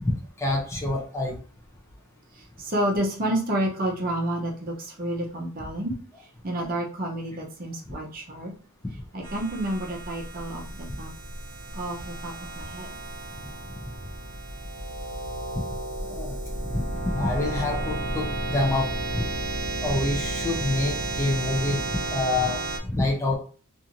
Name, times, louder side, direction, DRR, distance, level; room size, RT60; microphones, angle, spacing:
voice 1, 0.0-1.3 7.9-8.0 16.1-16.4 16.7-19.2 19.8-21.8 22.1-22.6 22.9-23.4, left 2 dB, 10° left, -1 dB, 0.4 m, -27 dB
voice 2, 2.6-5.9 6.4-8.5 9.1-11.1 11.7-12.9, right 1 dB, 40° right, -1 dB, 0.6 m, -29 dB
sound 1, 9.2-22.8, right 2 dB, 70° right, 0.8 m, -32 dB
2.5 x 2.5 x 2.8 m, 0.42 s
head